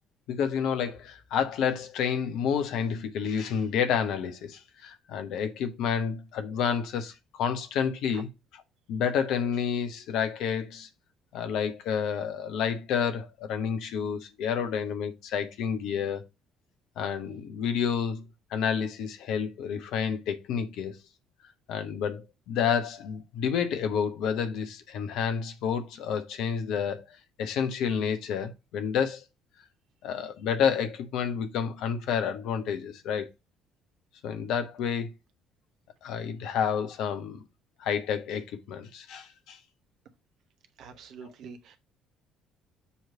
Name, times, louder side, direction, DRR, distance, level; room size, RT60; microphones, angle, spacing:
voice 1, 0.3-8.3 8.9-10.9 11.3-16.2 17.0-18.2 18.5-21.0 21.7-27.0 27.4-29.2 30.0-33.3 34.2-35.1 36.0-37.4 37.8-39.6, left 7 dB, 60° left, 0.9 m, -29 dB
voice 2, 40.8-41.8, right 6 dB, 55° right, 0.9 m, -45 dB
7.0 x 3.1 x 4.9 m
figure-of-eight pair, 50°, 0 cm